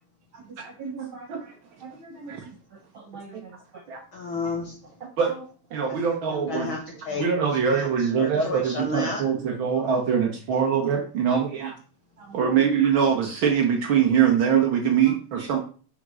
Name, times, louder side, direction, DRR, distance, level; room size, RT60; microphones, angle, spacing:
voice 1, 0.3-1.5 1.8-3.8 5.3-5.4 7.1-7.3 9.3-9.4 9.7-9.8 12.2-12.6 15.0-15.1, right 3 dB, 50° right, 0 dB, 1.9 m, -43 dB
voice 2, 1.0-1.5 2.3-2.5 3.3-3.4 3.9-4.0 5.2-5.3 5.7-6.7 7.2-11.7 12.3-15.6, right 7 dB, 90° right, 2 dB, 1.1 m, -23 dB
voice 3, 4.1-4.8 5.9-6.0 6.3-7.3 7.7-9.2, left 3 dB, 75° left, 2 dB, 1.1 m, -32 dB
5.2 x 4.9 x 6.0 m, 0.40 s
omnidirectional pair, 3.6 m